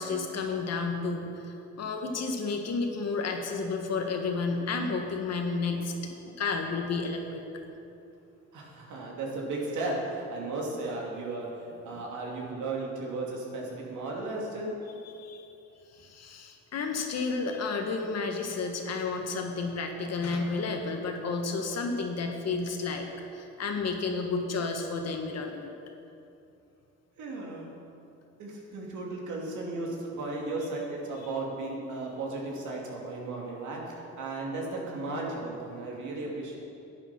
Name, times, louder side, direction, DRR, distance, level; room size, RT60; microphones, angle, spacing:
voice 1, 0.0-7.6 11.9-12.0 15.0-15.5 15.9-23.1 23.3-25.7, left 4 dB, 60° left, 3 dB, 1.5 m, -31 dB
voice 2, 8.5-14.8 27.2-27.7 28.4-36.6, right 2 dB, 75° right, -2 dB, 2.6 m, -35 dB
10.0 x 8.9 x 6.0 m, 2.7 s
cardioid pair, 90°, 30 cm